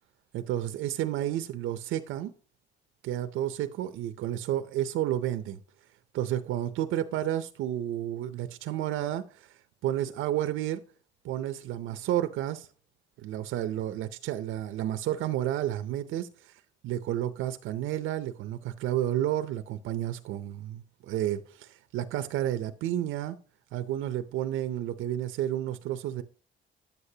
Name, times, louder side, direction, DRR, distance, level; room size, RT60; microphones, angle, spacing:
voice 1, 0.3-2.3 3.0-5.6 6.1-9.6 9.8-10.8 11.2-12.7 13.2-16.3 16.8-23.4 23.7-26.2, right 12 dB, 85° right, 0.6 m, -31 dB
10.5 x 8.1 x 2.8 m
cardioid pair, 90°, 20 cm